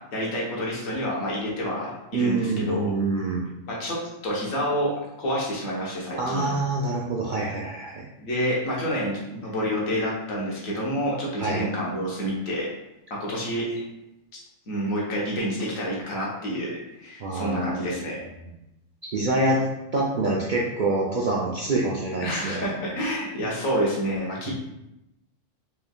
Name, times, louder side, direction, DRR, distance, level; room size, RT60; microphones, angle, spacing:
voice 1, 0.0-2.9 3.7-4.0 4.2-4.9 5.2-6.5 8.2-12.7 13.1-13.8 14.7-16.7 17.0-18.2 22.2-24.5, equal, 85° left, -4 dB, 1.5 m, -28 dB
voice 2, 2.1-3.4 6.2-8.1 11.4-11.7 17.2-17.8 19.1-19.6 19.9-22.7 24.5-24.6, right 2 dB, 60° right, -4 dB, 0.5 m, -26 dB
4.6 x 3.2 x 2.3 m, 0.89 s
omnidirectional pair, 1.4 m